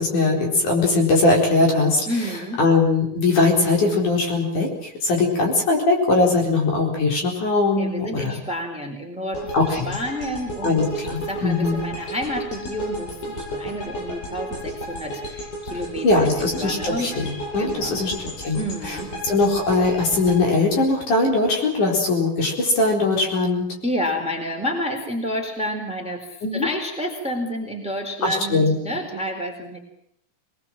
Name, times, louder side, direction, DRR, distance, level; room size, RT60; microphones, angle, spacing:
voice 1, 0.0-2.0 2.6-8.3 9.5-9.9 10.6-11.8 16.0-18.6 18.9-19.0 19.2-23.7 26.4-26.7 28.2-28.8, left 3 dB, 55° left, 0 dB, 5.8 m, -20 dB
voice 2, 2.1-2.6 7.7-13.1 13.4-17.1 17.6-18.1 18.6-19.1 23.8-29.8, equal, ahead, 3 dB, 3.6 m, -30 dB
sound 1, 9.3-21.5, equal, 80° left, 9.0 m, -33 dB
23.5 x 21.0 x 7.5 m, 0.71 s
omnidirectional pair, 4.4 m